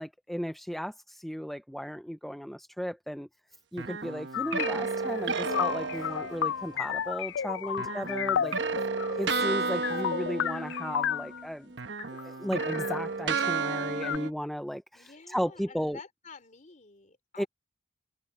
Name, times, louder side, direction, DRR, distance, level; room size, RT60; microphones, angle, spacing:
voice 1, 0.0-3.3 3.7-8.5 9.2-11.7 12.1-16.0 17.4-17.5, equal, ahead, 0.5 m, -35 dB
sound 1, 3.8-6.9 7.8-11.4 11.7-14.3, right 4 dB, 70° right, 1.2 m, -32 dB
sound 2, 4.3-11.4 12.0-12.2 12.6-13.5 14.0-14.2, left 9 dB, 85° left, 0.3 m, -33 dB
voice 2, 7.7-8.1 14.9-17.5, left 4 dB, 45° left, 3.4 m, -50 dB
open air
head